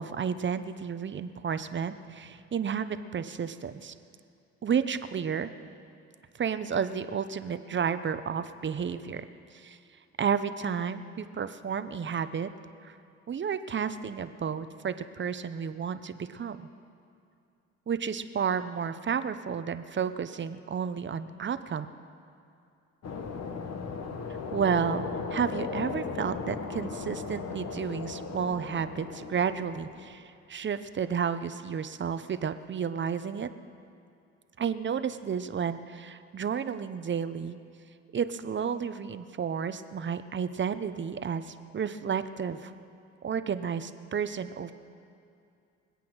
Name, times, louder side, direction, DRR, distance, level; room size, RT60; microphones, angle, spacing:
voice 1, 0.0-3.9 4.6-5.5 6.4-9.2 9.5-9.8 10.2-12.5 12.8-12.9 13.3-16.7 17.9-21.9 24.5-30.2 30.5-33.5 34.6-37.6 38.1-42.7 43.2-44.7, right 7 dB, 40° right, 11 dB, 0.8 m, -31 dB
sound 1, 23.0-30.1, left 5 dB, 55° left, 1.4 m, -37 dB
24.0 x 8.5 x 6.2 m, 2.5 s
cardioid pair, 90°, 30 cm